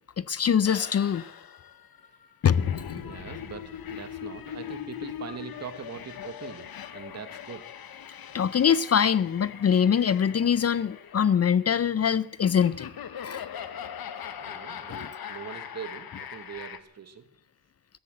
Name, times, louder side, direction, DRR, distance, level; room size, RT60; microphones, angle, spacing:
voice 1, 0.2-1.2 2.4-2.7 8.3-12.9 13.2-13.4 14.9-15.1, left 8 dB, 45° left, 0.5 m, -23 dB
sound 1, 0.6-16.8, left 9 dB, 80° left, 1.2 m, -41 dB
voice 2, 2.9-7.6 14.4-17.2, right 7 dB, 45° right, 1.3 m, -42 dB
14.0 x 12.5 x 7.8 m
wide cardioid pair, 165°, 36 cm